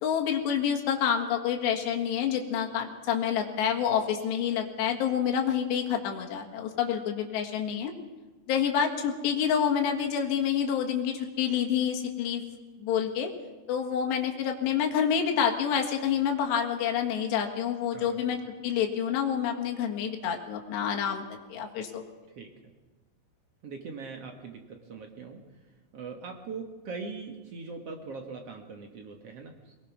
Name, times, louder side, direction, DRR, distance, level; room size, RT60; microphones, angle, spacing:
voice 1, 0.0-7.9 8.5-12.4 12.8-13.3 13.7-21.2 21.5-22.0, left 8 dB, 80° left, 2 dB, 3.9 m, -28 dB
voice 2, 17.9-18.3 22.3-22.5 23.6-25.7 25.9-29.7, right 4 dB, 65° right, 3 dB, 1.5 m, -41 dB
22.5 x 19.5 x 6.0 m, 1.2 s
omnidirectional pair, 5.0 m